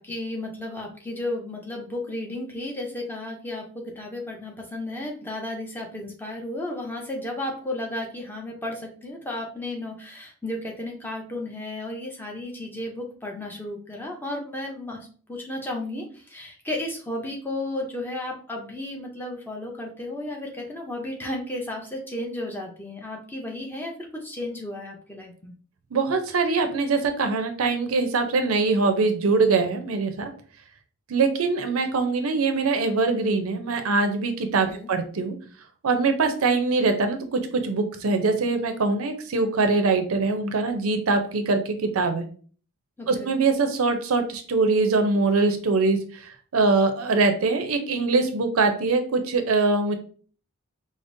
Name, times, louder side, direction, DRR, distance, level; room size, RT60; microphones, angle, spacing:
voice 1, 0.0-25.5 34.7-34.9 43.0-43.4, left 1 dB, 10° left, 0 dB, 0.6 m, -33 dB
voice 2, 25.9-30.3 31.1-35.3 35.8-42.2 43.1-50.0, right 3 dB, 70° right, 7 dB, 0.5 m, -23 dB
5.0 x 2.0 x 2.6 m, 0.43 s
head